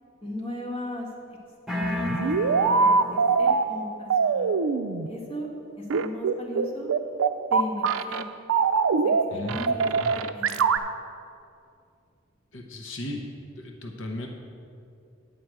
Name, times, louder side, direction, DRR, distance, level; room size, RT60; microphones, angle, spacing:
voice 1, 0.2-1.4 1.7-2.2 2.6-4.5 5.1-5.5 5.8-6.9 7.5-8.2 9.0-9.9 10.3-10.7, left 1 dB, 25° left, -3 dB, 1.5 m, -36 dB
sound 1, 1.7-3.6, left 1 dB, ahead, 0.8 m, -32 dB
sound 2, 1.8-3.6 4.1-5.1 5.9-8.2 8.5-9.2 9.5-10.8, right 5 dB, 90° right, 0.4 m, -23 dB
voice 2, 12.5-13.2 13.6-14.3, left 1 dB, 70° left, 2 dB, 0.9 m, -36 dB
9.2 x 4.7 x 7.7 m, 2.5 s
head